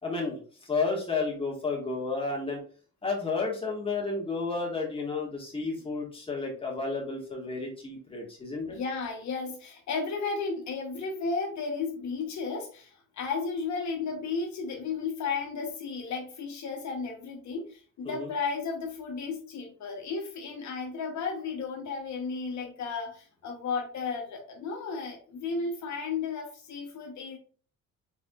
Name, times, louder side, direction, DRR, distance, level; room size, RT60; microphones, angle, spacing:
voice 1, 0.0-2.6 3.0-8.8 18.0-18.3, left 3 dB, 20° left, -2 dB, 1.8 m, -32 dB
voice 2, 8.6-27.4, left 4 dB, 65° left, 1 dB, 1.2 m, -34 dB
4.5 x 4.0 x 2.4 m, 0.41 s
cardioid pair, 90°, 30 cm